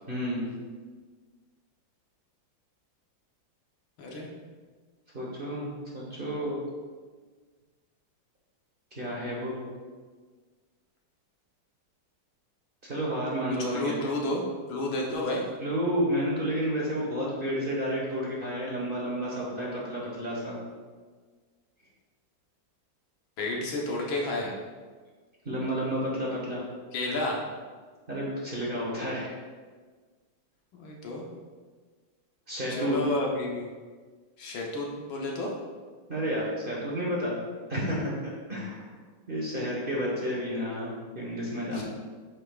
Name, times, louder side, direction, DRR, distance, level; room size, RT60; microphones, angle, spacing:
voice 1, 0.1-0.5 5.1-6.6 8.9-9.6 12.8-14.0 15.6-20.6 25.4-26.6 28.1-29.3 32.5-33.0 36.1-37.4 37.7-38.1 38.5-38.9 39.3-41.8, equal, 35° right, -5 dB, 1.1 m, -31 dB
voice 2, 4.0-4.3 9.1-9.7 13.7-14.4 14.7-15.4 23.4-24.5 26.9-27.4 30.7-31.3 32.8-33.7 34.4-35.5 41.7-41.8, left 1 dB, 85° left, -1 dB, 1.8 m, -31 dB
8.1 x 5.3 x 2.4 m, 1.5 s
omnidirectional pair, 2.1 m